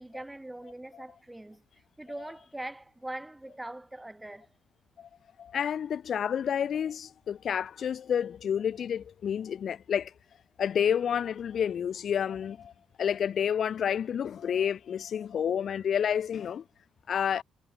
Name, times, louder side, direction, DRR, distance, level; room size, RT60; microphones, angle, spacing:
voice 1, 0.0-1.6 2.0-4.5, right 1 dB, 10° right, 5.8 m, -42 dB
voice 2, 5.4-10.1 10.6-12.7 13.0-16.6 17.1-17.4, left 8 dB, 60° left, 1.7 m, -29 dB
cardioid pair, 90°, 0 cm